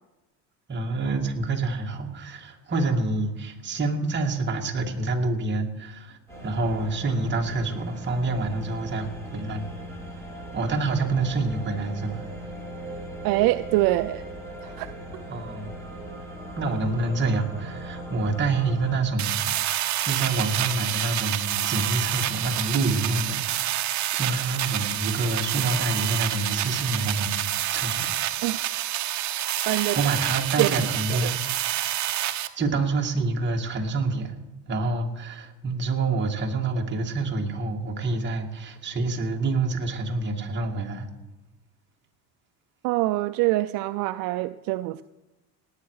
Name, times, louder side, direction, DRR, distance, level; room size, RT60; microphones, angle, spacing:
voice 1, 0.7-6.2 6.4-9.6 10.5-12.3 15.3-15.7 16.6-19.7 20.0-27.4 27.7-28.1 30.0-31.4 31.7-31.9 32.6-34.4 34.7-41.1, right 3 dB, 30° right, 1 dB, 2.0 m, -27 dB
sound 1, 6.3-19.0, right 1 dB, 5° left, 5.5 m, -39 dB
voice 2, 13.2-14.2 14.6-14.9 15.1-15.2 28.4-28.7 29.7-30.0 30.6-30.7 31.1-31.3 42.8-45.0, right 18 dB, 65° right, 12 dB, 0.5 m, -25 dB
sound 2, 19.2-32.5, right 13 dB, 50° right, 1.0 m, -28 dB
18.5 x 9.1 x 4.8 m, 1.1 s
cardioid pair, 125°, 37 cm